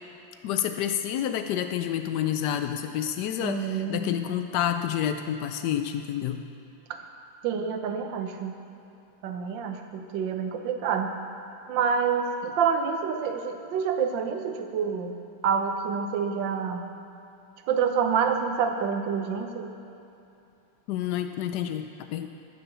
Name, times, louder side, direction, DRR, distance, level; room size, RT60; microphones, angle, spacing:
voice 1, 0.4-6.4 20.9-22.3, left 10 dB, 90° left, 7 dB, 0.9 m, -29 dB
voice 2, 3.4-4.2 6.9-7.0 7.4-8.5 9.2-11.2 11.7-15.1 15.4-16.8 17.7-19.7, right 6 dB, 65° right, 6 dB, 1.4 m, -27 dB
14.0 x 6.9 x 6.8 m, 2.7 s
omnidirectional pair, 2.4 m